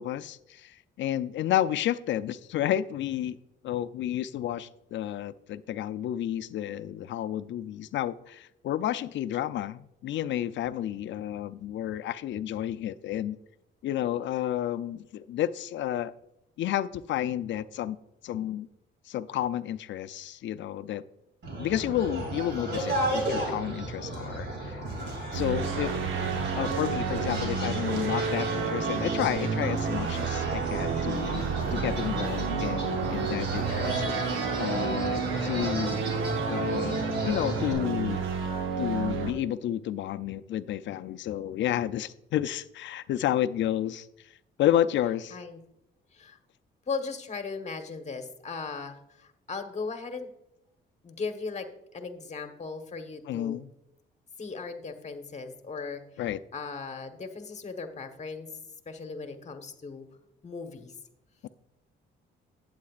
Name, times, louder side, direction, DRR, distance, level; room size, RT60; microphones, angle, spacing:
voice 1, 0.0-3.4 3.6-13.4 13.8-16.1 16.6-18.0 18.2-18.7 19.1-21.0 21.6-24.8 25.3-25.9 26.6-31.5 31.7-36.0 36.5-38.3 38.8-44.1 44.6-45.4 53.3-53.7 56.2-56.4 61.4-61.5, left 11 dB, 70° left, 14 dB, 0.5 m, -31 dB
sound 1, 21.4-37.7, right 1 dB, 60° right, 2.8 m, -34 dB
sound 2, 25.3-39.3, right 5 dB, 80° right, 1.1 m, -30 dB
voice 2, 46.9-50.3 51.0-53.6 54.4-56.0 56.5-58.5 58.8-60.0 60.4-60.9, left 4 dB, 35° left, 6 dB, 1.3 m, -37 dB
11.5 x 8.8 x 2.4 m, 0.84 s
cardioid pair, 90°, 20 cm